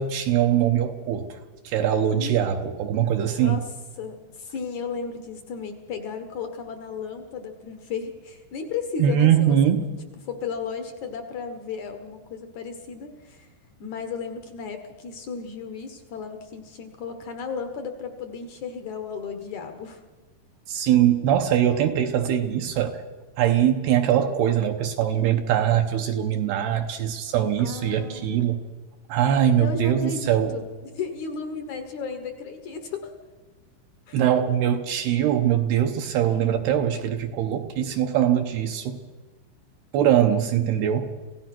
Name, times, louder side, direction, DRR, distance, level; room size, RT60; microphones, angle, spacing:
voice 1, 0.0-1.4 1.6-3.6 9.0-9.9 20.7-23.0 23.4-28.6 29.1-30.6 34.1-39.0 39.9-41.1, right 10 dB, 75° right, 4 dB, 2.7 m, -22 dB
voice 2, 4.0-9.6 10.3-13.5 13.8-20.0 20.7-20.9 27.6-28.3 29.6-33.1 34.1-34.2 40.4-40.8, left 5 dB, 70° left, 7 dB, 1.8 m, -34 dB
27.5 x 16.5 x 6.0 m, 1.3 s
omnidirectional pair, 5.2 m